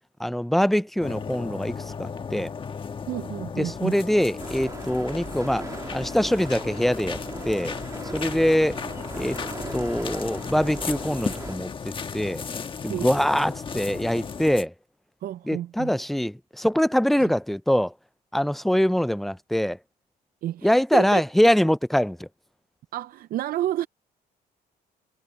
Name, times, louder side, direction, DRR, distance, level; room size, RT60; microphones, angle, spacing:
voice 1, 0.2-2.5 3.5-7.2 7.5-7.7 8.1-8.8 9.1-9.4 9.7-12.4 12.8-14.7 15.5-17.9 18.3-19.8 20.6-22.3, equal, ahead, 0.4 m, -23 dB
sound 1, 1.0-14.7, left 6 dB, 30° left, 1.4 m, -35 dB
voice 2, 3.1-4.0 12.9-13.1 15.2-15.9 17.2-17.3 20.4-21.2 22.9-23.9, right 13 dB, 60° right, 0.5 m, -30 dB
sound 2, 4.4-11.6, right 3 dB, 20° right, 1.9 m, -39 dB
cardioid pair, 110°, 17 cm